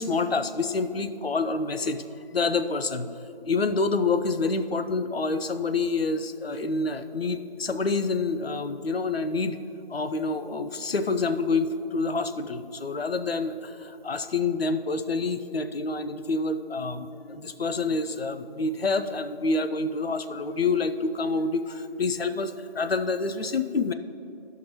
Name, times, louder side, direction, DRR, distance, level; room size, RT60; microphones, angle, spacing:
voice 1, 0.0-2.0 2.3-3.1 3.4-9.6 9.9-23.9, left 3 dB, 80° left, 10 dB, 0.5 m, -27 dB
12.5 x 5.7 x 3.1 m, 2.8 s
figure-of-eight pair, 175°, 30 cm